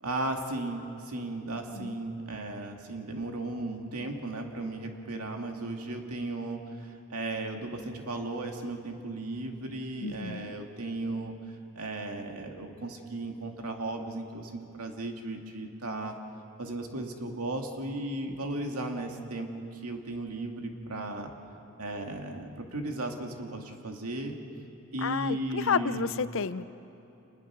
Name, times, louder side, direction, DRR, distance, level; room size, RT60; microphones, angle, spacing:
voice 1, 0.0-11.3 11.8-16.1 16.6-21.3 21.8-24.4 24.9-26.1, right 2 dB, 90° right, 3 dB, 2.2 m, -35 dB
voice 2, 10.0-10.5 25.0-26.7, left 6 dB, 65° left, 14 dB, 0.6 m, -31 dB
27.0 x 21.0 x 6.2 m, 3.0 s
head